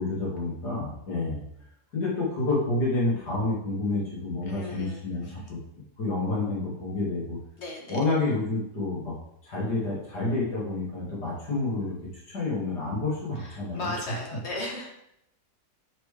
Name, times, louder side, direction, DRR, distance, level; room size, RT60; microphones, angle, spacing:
voice 1, 0.0-1.4 1.9-5.6 6.0-7.4 7.9-9.1 9.4-13.9, left 2 dB, 75° left, -6 dB, 2.7 m, -29 dB
voice 2, 4.4-5.5 7.6-8.0 13.3-14.9, left 2 dB, 45° left, 0 dB, 1.3 m, -37 dB
8.2 x 4.5 x 3.3 m, 0.78 s
omnidirectional pair, 1.8 m